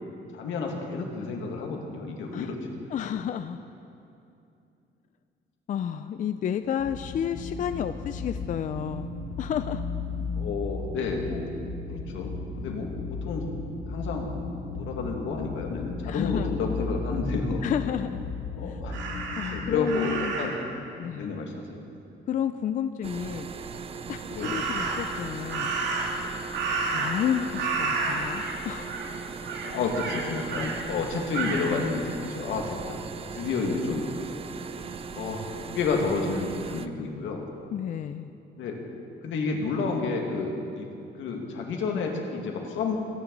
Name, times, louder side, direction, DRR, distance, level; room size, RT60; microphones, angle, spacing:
voice 1, 0.3-2.7 10.4-11.5 11.9-13.5 13.9-14.3 14.8-17.6 18.5-19.0 19.5-20.5 21.1-21.9 24.3-24.6 29.6-33.0 33.3-34.0 35.2-37.5 38.6-38.8 39.2-40.9 41.2-43.0, left 4 dB, 80° left, 1 dB, 2.1 m, -30 dB
voice 2, 2.9-3.6 5.7-9.1 9.4-9.8 16.0-16.6 17.6-18.1 18.7-18.8 19.4-20.3 21.0-21.3 22.3-23.5 24.1-25.7 26.9-28.9 37.7-38.3, left 9 dB, 40° left, 10 dB, 0.4 m, -31 dB
sound 1, 6.8-19.8, left 4 dB, 60° left, 1.2 m, -35 dB
Crow, 18.9-20.6 24.4-25.1 25.5-27.3 27.6-28.6 28.9-29.1 29.4-30.8 31.3-31.7, right 4 dB, 65° right, 2.3 m, -30 dB
sound 2, 23.0-36.9, right 5 dB, 30° right, 0.4 m, -38 dB
23.0 x 10.0 x 4.0 m, 2.7 s
cardioid pair, 150°, 20 cm